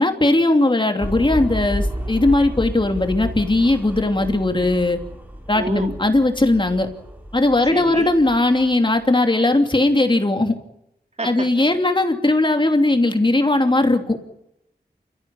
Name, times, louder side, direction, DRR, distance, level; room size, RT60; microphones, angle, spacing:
voice 1, 0.0-5.0 5.5-6.9 7.3-10.5 11.2-14.2, left 2 dB, 30° left, 5 dB, 3.0 m, -18 dB
sound 1, 1.0-9.0, equal, 10° right, 4.1 m, -31 dB
voice 2, 5.5-6.0 7.7-8.1 11.2-11.7, right 2 dB, 40° right, 5 dB, 2.8 m, -28 dB
29.0 x 15.0 x 9.1 m, 0.85 s
wide cardioid pair, 80°, 17 cm